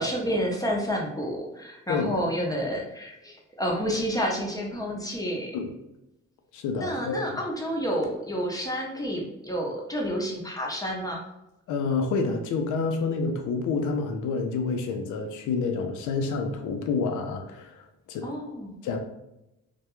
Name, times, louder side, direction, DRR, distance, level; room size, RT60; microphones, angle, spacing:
voice 1, 0.0-5.5 6.8-11.2 18.2-18.7, equal, 10° left, -1 dB, 0.5 m, -29 dB
voice 2, 1.9-2.2 5.5-5.7 6.5-7.2 11.7-17.8 18.1-18.3 18.8-19.0, left 4 dB, 80° left, 5 dB, 0.5 m, -28 dB
2.2 x 2.2 x 2.9 m, 0.89 s
cardioid pair, 90°, 30 cm